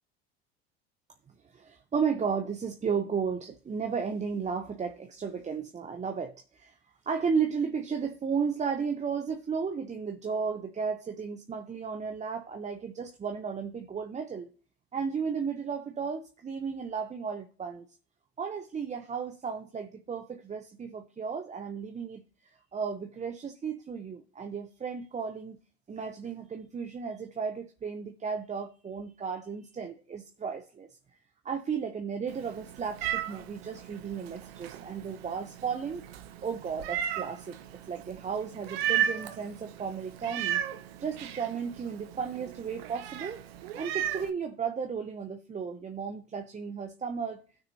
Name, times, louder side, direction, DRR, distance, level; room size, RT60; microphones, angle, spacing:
voice 1, 1.4-6.7 7.0-14.5 14.9-17.9 18.4-25.6 25.9-30.9 31.4-36.0 36.4-37.6 37.8-40.6 41.0-43.4 43.8-47.4, right 6 dB, 20° right, 0.8 m, -34 dB
Meow, 32.3-44.3, right 10 dB, 70° right, 1.0 m, -36 dB
17.0 x 6.3 x 2.8 m
hypercardioid pair, 75°, 31 cm